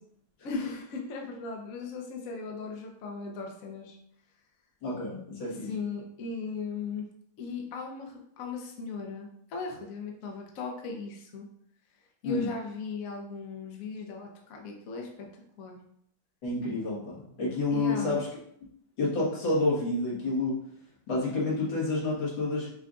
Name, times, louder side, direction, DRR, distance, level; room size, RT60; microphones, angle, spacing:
voice 1, 0.4-4.0 5.4-7.1 7.4-11.5 12.2-15.8 17.7-18.2, left 4 dB, 60° left, 1 dB, 1.0 m, -38 dB
voice 2, 4.8-5.7 12.2-12.5 16.4-18.3 19.0-20.6 21.1-22.7, left 2 dB, 75° left, -5 dB, 2.2 m, -29 dB
5.6 x 2.5 x 3.7 m, 0.70 s
omnidirectional pair, 2.1 m